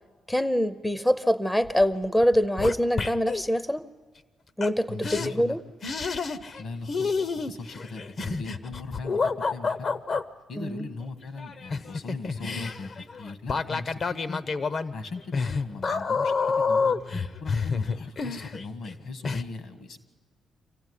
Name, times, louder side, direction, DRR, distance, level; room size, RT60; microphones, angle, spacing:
voice 1, 0.3-3.8 4.6-5.6 10.6-10.8, equal, 10° left, 15 dB, 0.6 m, -24 dB
sound 1, 1.6-1.9 2.2-3.4 4.6-4.7 5.0-5.3 5.8-6.6 6.9-10.2 11.4-18.9 19.2-19.4, left 4 dB, 50° left, 0.8 m, -29 dB
voice 2, 4.9-5.6 6.6-9.9 10.5-12.9 13.2-14.4 14.9-17.0 17.4-20.0, left 3 dB, 70° left, 9 dB, 2.0 m, -39 dB
25.5 x 15.0 x 9.9 m, 1.5 s
cardioid pair, 75°, 0 cm